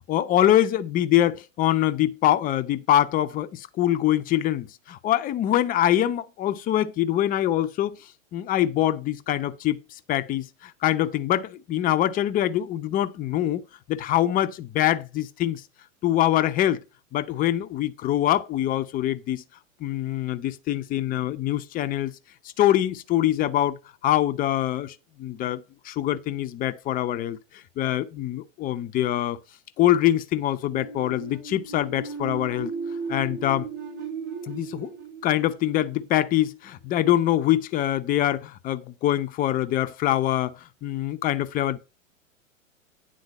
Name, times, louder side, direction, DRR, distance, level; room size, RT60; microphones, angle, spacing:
voice 1, 0.1-8.0 8.3-9.8 10.1-13.6 13.9-15.6 16.0-16.8 17.1-19.4 19.8-22.1 22.6-23.8 24.0-27.4 27.8-29.4 29.8-32.7 33.1-33.7 34.5-34.9 35.2-40.6 40.8-41.8, left 12 dB, 20° left, 0.6 m, -24 dB
sound 1, 30.7-36.4, right 5 dB, 55° right, 2.6 m, -36 dB
9.6 x 3.9 x 6.4 m
hypercardioid pair, 110°, 39 cm